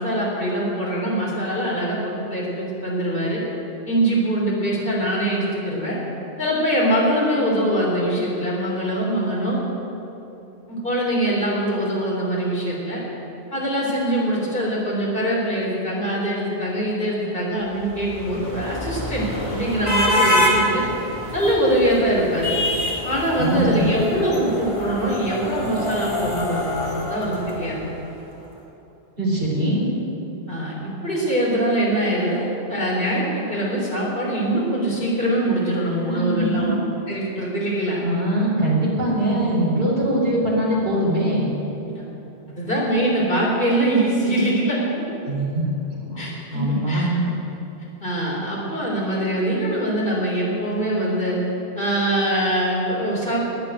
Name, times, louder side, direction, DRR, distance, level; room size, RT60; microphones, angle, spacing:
voice 1, 0.0-3.4 3.9-6.0 6.4-9.6 10.7-13.0 13.5-20.8 21.3-22.6 23.0-27.8 30.5-36.8 37.1-38.0 41.9-42.0 42.5-44.8 46.2-47.1 48.0-51.4 51.8-53.4, right 1 dB, 55° left, -5 dB, 4.0 m, -23 dB
sound 1, 17.8-28.1, left 1 dB, 30° left, 2.3 m, -26 dB
voice 2, 23.4-23.9 29.2-29.9 36.0-36.8 38.0-41.5 45.3-47.2, right 1 dB, 60° right, -6 dB, 4.1 m, -22 dB
11.0 x 10.0 x 9.2 m, 2.9 s
omnidirectional pair, 1.1 m